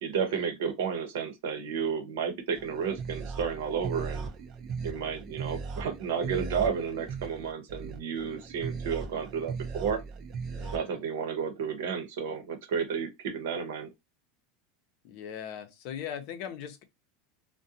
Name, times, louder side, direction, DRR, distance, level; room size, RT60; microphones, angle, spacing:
voice 1, 0.0-4.3 4.8-10.0 10.7-13.9, right 6 dB, 80° right, 0.8 m, -32 dB
sound 1, 2.6-10.8, right 5 dB, 40° right, 0.6 m, -38 dB
voice 2, 10.5-11.0 15.0-16.8, left 9 dB, 60° left, 0.6 m, -40 dB
2.4 x 2.2 x 2.7 m
supercardioid pair, 125°, 0 cm